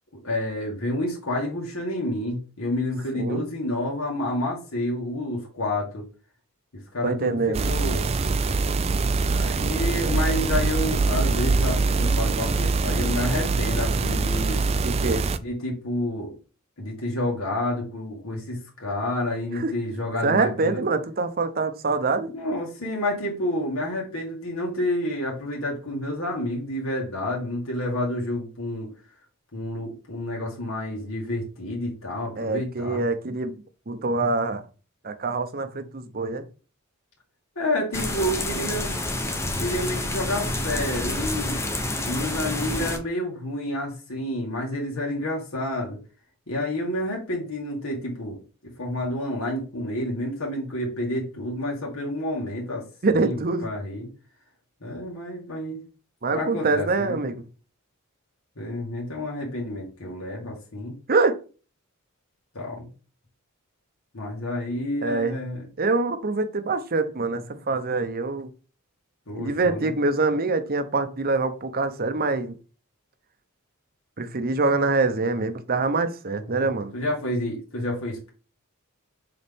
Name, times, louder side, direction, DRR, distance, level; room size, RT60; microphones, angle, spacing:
voice 1, 0.1-6.1 6.9-8.1 9.3-14.6 15.4-16.3 16.8-20.8 22.3-28.9 29.5-33.0 37.6-38.9 39.6-41.6 42.0-46.0 46.5-48.4 48.6-52.9 53.1-54.1 54.8-55.8 56.3-57.2 58.6-61.0 62.5-62.9 64.1-65.6 69.3-69.9 76.3-76.6 76.9-78.3, left 1 dB, 70° left, 2.1 m, -29 dB
voice 2, 7.0-7.7 14.8-15.2 19.5-19.7 20.2-22.3 32.4-33.6 33.9-34.6 35.0-36.4 53.0-53.7 56.2-57.4 61.1-61.4 65.0-65.5 65.8-68.5 69.4-72.5 74.2-76.9, right 3 dB, 45° right, 0.8 m, -25 dB
sound 1, 7.5-15.4, right 3 dB, 30° right, 0.4 m, -23 dB
sound 2, 37.9-43.0, left 1 dB, 15° left, 0.8 m, -28 dB
6.8 x 4.1 x 3.6 m
head